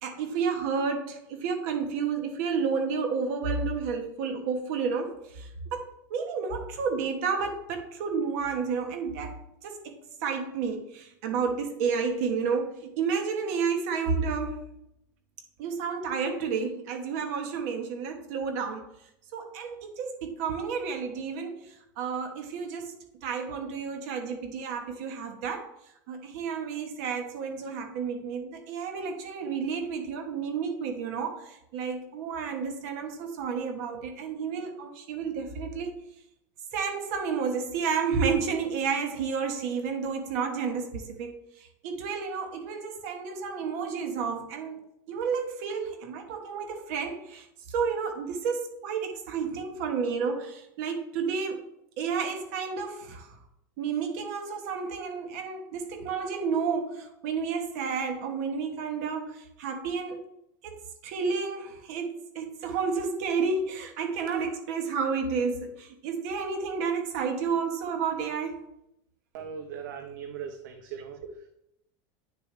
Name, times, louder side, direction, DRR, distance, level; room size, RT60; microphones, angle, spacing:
voice 1, 0.0-14.6 15.6-18.8 19.3-25.7 26.1-36.1 36.7-51.7 52.0-53.3 53.8-60.2 60.6-68.6, right 5 dB, 55° right, 4 dB, 1.3 m, -31 dB
voice 2, 69.3-71.2, right 7 dB, 80° right, 5 dB, 0.9 m, -39 dB
9.7 x 6.7 x 3.3 m, 0.79 s
supercardioid pair, 175°, 10 cm